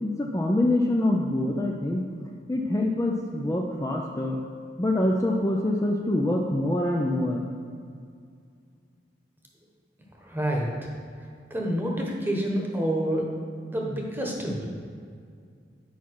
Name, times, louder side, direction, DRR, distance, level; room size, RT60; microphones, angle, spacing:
voice 1, 0.0-2.0 2.5-4.4 4.8-7.4, left 1 dB, 20° left, -1 dB, 0.5 m, -25 dB
voice 2, 10.2-10.9 11.5-13.3 13.7-14.7, right 1 dB, 10° right, -1 dB, 1.2 m, -28 dB
9.2 x 5.7 x 4.7 m, 2.2 s
head